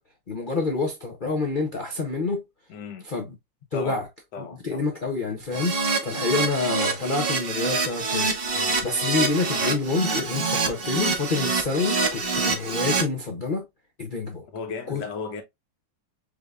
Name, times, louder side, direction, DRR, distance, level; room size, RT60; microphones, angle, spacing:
voice 1, 0.3-2.4 3.1-3.2 3.7-4.0 4.6-5.8 6.0-8.3 8.6-13.6 14.0-14.5 14.9-15.0, left 3 dB, 50° left, 0.6 m, -27 dB
voice 2, 2.7-3.1 3.7-4.0 4.3-4.8 5.5-5.7 8.5-9.1 14.5-15.4, left 4 dB, 70° left, 1.6 m, -36 dB
Keyboard (musical), 5.5-13.0, right 4 dB, 45° right, 0.8 m, -26 dB
5.0 x 3.3 x 2.3 m
omnidirectional pair, 2.0 m